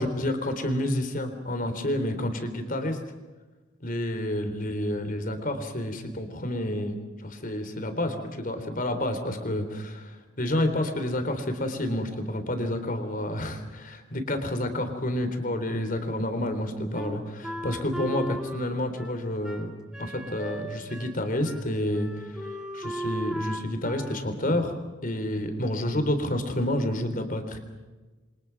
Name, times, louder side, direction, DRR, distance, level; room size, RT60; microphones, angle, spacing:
voice 1, 0.0-3.0 3.8-19.7 20.0-22.5 22.7-24.8 25.0-27.6, left 1 dB, 45° left, 7 dB, 3.7 m, -29 dB
Wind instrument woodwind instrument, 16.9-21.2 21.4-21.6 21.9-24.2, right 1 dB, 5° right, 2.7 m, -37 dB
28.0 x 25.0 x 6.0 m, 1.2 s
head